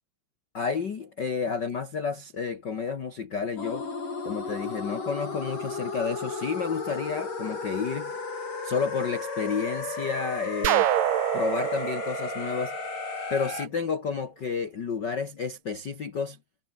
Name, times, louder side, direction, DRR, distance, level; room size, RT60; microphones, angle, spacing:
voice 1, 0.5-3.9 4.2-8.2 8.6-10.9 11.3-12.8 13.3-16.4, left 5 dB, 85° left, 0.9 m, -31 dB
sound 1, 3.6-13.7, left 4 dB, 55° left, 8.4 m, -34 dB
sound 2, 10.6-13.4, right 16 dB, 85° right, 3.1 m, -27 dB
omnidirectional pair, 4.5 m